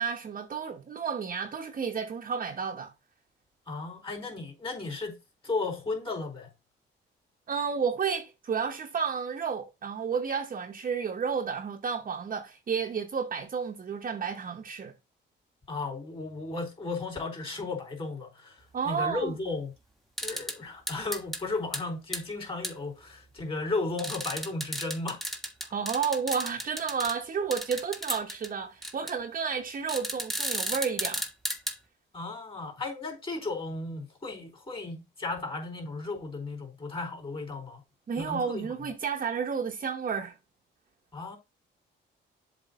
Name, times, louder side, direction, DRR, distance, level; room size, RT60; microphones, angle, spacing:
voice 1, 0.0-2.9 7.5-14.9 18.7-19.3 25.7-31.2 38.1-40.3, right 6 dB, 45° right, 1.1 m, -31 dB
voice 2, 3.7-5.2 5.4-6.5 15.7-18.6 18.8-19.7 20.2-25.2 32.1-37.8 38.2-38.7 41.1-41.4, left 3 dB, 25° left, 4.0 m, -35 dB
sound 1, 20.2-20.6 20.9-21.4 21.7-21.8 22.1-22.2 22.6-22.7 24.0-27.1 27.5-28.5 28.8-29.1 29.9-31.7, equal, ahead, 1.4 m, -33 dB
7.5 x 3.2 x 5.3 m
cardioid pair, 90°, 20 cm